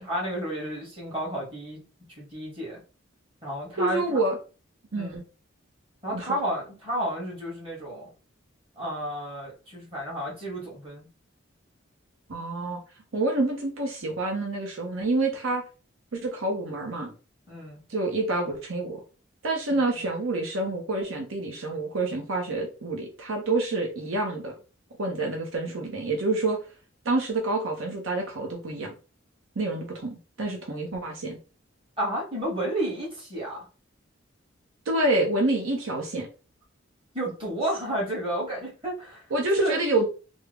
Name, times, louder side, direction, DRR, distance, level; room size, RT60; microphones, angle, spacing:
voice 1, 0.0-1.8 2.2-2.8 3.4-4.2 5.0-5.2 6.0-8.1 8.8-11.1 17.5-17.8 19.7-20.1 32.0-33.6 37.1-39.2 39.6-39.8, right 1 dB, 25° right, -5 dB, 1.8 m, -31 dB
voice 2, 3.8-4.4 4.9-5.2 6.1-6.3 12.3-12.8 13.1-15.6 16.1-17.1 17.9-19.0 19.4-24.5 25.0-26.6 27.0-28.9 29.6-31.4 34.9-36.3 39.3-40.1, right 2 dB, 80° right, 2 dB, 0.7 m, -27 dB
3.5 x 2.1 x 3.3 m, 0.34 s
head